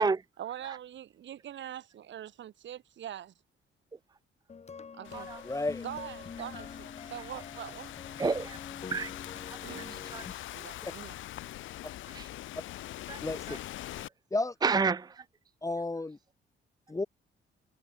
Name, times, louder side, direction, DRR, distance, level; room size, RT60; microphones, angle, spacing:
voice 1, 0.4-3.3 5.0-5.3 5.8-7.9 9.6-10.2 10.5-11.2 13.5-13.6, right 11 dB, 65° right, 2.4 m, -43 dB
sound 1, 4.5-10.3, left 5 dB, 35° left, 1.3 m, -45 dB
Thunderstorm / Rain, 5.1-14.1, left 14 dB, 75° left, 0.7 m, -44 dB
voice 2, 5.4-5.8 10.8-10.9 13.2-13.6 14.3-14.5 15.6-16.2 16.9-17.0, left 2 dB, 15° left, 0.8 m, -32 dB
voice 3, 8.2-8.6 8.9-9.1 10.1-10.3 12.1-12.3 13.1-13.2 13.5-13.6 14.6-15.2, right 4 dB, 20° right, 0.7 m, -29 dB
cardioid pair, 90°, 20 cm